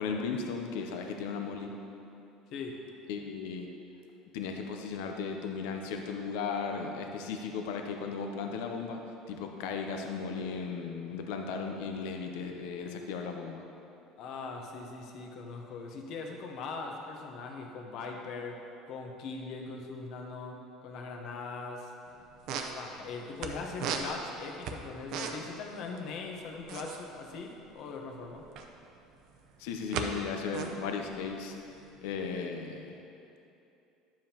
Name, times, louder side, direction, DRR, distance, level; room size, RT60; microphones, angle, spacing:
voice 1, 0.0-1.7 3.1-3.7 4.3-9.0 9.3-13.6 29.6-31.5 32.0-33.0, left 5 dB, 85° left, 3 dB, 0.6 m, -36 dB
voice 2, 14.2-18.6 18.9-21.9 22.7-28.4, left 4 dB, 55° left, 2 dB, 0.9 m, -41 dB
sound 1, 22.1-22.2 22.3-23.5 23.8-25.6 25.8-26.0 26.3-28.8 29.3-30.1 30.4-32.3, right 6 dB, 55° right, 0.6 m, -37 dB
11.0 x 7.4 x 2.9 m, 2.8 s
cardioid pair, 150°, 0 cm